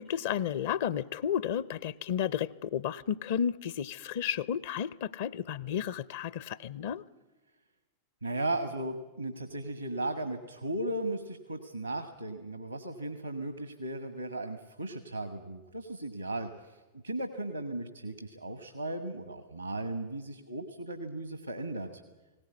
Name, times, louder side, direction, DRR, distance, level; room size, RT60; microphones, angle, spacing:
voice 1, 0.0-7.0, left 9 dB, 55° left, 20 dB, 0.6 m, -32 dB
voice 2, 8.2-16.8 17.0-21.9, right 1 dB, 90° right, 9 dB, 1.4 m, -36 dB
19.5 x 17.5 x 9.5 m, 1.2 s
figure-of-eight pair, 90°, 0 cm